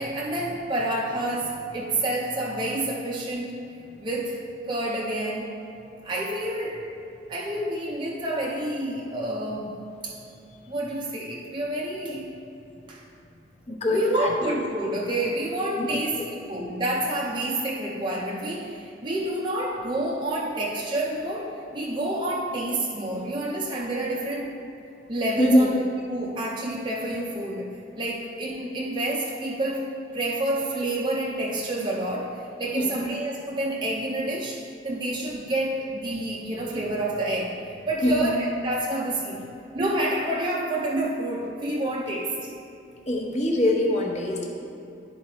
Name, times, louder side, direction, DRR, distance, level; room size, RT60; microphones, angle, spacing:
voice 1, 0.0-3.6 4.0-5.6 6.0-6.9 7.3-10.2 10.7-12.4 12.9-13.0 13.9-24.6 25.1-25.8 26.1-37.6 37.9-39.5 39.7-42.4, right 1 dB, 25° right, -4 dB, 0.5 m, -28 dB
voice 2, 13.7-14.3 15.8-16.3 25.4-25.7 32.7-33.0 38.0-38.3 43.1-44.5, left 1 dB, 35° left, -1 dB, 0.9 m, -23 dB
11.5 x 4.3 x 2.9 m, 2.7 s
head